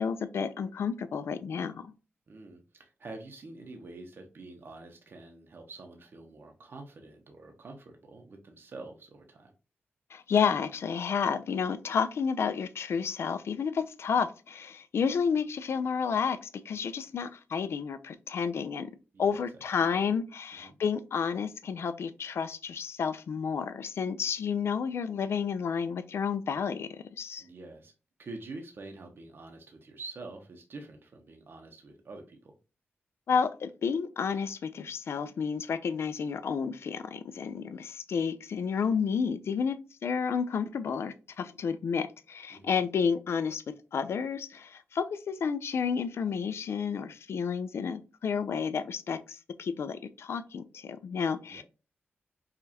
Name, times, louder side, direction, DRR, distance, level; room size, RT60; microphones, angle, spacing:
voice 1, 0.0-1.9 10.1-18.9 19.2-27.4 33.3-39.8 40.0-43.6 43.9-51.6, left 6 dB, 75° left, 0.4 m, -31 dB
voice 2, 2.3-9.5 19.1-19.4 19.9-20.1 20.6-20.8 27.4-27.9 28.2-32.6 42.5-42.8 51.4-51.6, right 3 dB, 55° right, 0.7 m, -46 dB
4.9 x 2.3 x 2.7 m
wide cardioid pair, 90°, 4 cm